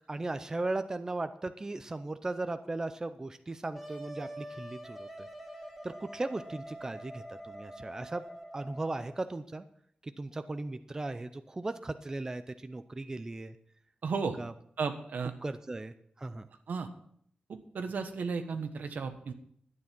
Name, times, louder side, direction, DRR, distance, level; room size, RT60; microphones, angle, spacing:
voice 1, 0.1-5.1 5.8-8.2 8.5-9.6 10.2-13.6 14.4-14.5 15.4-16.5, right 2 dB, 20° right, 10 dB, 0.5 m, -37 dB
Wind instrument woodwind instrument, 3.7-9.2, right 1 dB, ahead, 2.6 m, -46 dB
voice 2, 14.0-14.4 14.8-15.3 16.7-16.9 17.5-19.3, right 5 dB, 75° right, 7 dB, 1.3 m, -34 dB
11.5 x 9.6 x 6.0 m, 0.67 s
wide cardioid pair, 165°, 3 cm